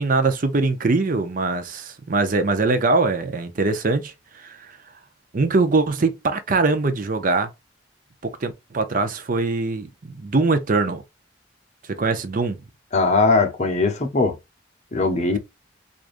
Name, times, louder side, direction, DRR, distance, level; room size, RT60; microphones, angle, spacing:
voice 1, 0.0-4.8 5.3-7.5 8.2-11.0 12.0-12.6, right 3 dB, 45° right, 0.6 m, -22 dB
voice 2, 12.9-14.4 14.9-15.4, left 3 dB, 35° left, 0.8 m, -20 dB
4.7 x 2.6 x 2.5 m
head